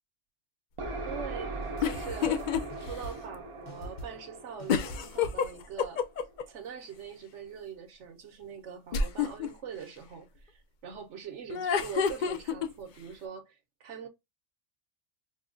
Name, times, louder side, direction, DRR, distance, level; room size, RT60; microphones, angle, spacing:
sound 1, 0.8-6.4, right 3 dB, 45° right, 0.4 m, -40 dB
voice 1, 1.0-1.5 1.8-6.0 6.5-14.1, right 7 dB, 70° right, 1.1 m, -43 dB
sound 2, 1.5-3.4 3.7-4.3 4.6-5.5, left 1 dB, 45° left, 0.8 m, -44 dB
sound 3, 1.8-2.6 3.0-3.1 4.7-6.4 8.9-9.5 11.5-12.7, left 6 dB, 65° left, 0.4 m, -28 dB
4.7 x 2.2 x 2.4 m
omnidirectional pair, 1.3 m